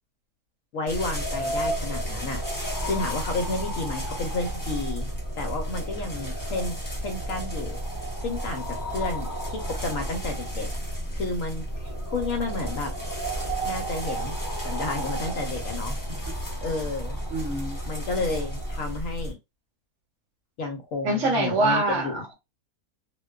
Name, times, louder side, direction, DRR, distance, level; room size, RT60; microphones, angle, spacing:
voice 1, 0.7-5.1 5.4-7.8 8.2-10.7 11.1-12.9 13.6-14.4 14.6-16.0 16.6-17.2 17.9-19.4 20.6-22.2, left 3 dB, 70° left, 3 dB, 1.0 m, -31 dB
sound 1, 0.9-19.3, right 1 dB, 20° left, 0.5 m, -32 dB
voice 2, 17.3-17.8 21.0-22.3, right 2 dB, 60° right, 2 dB, 1.0 m, -25 dB
2.5 x 2.2 x 2.2 m, 0.23 s
omnidirectional pair, 1.6 m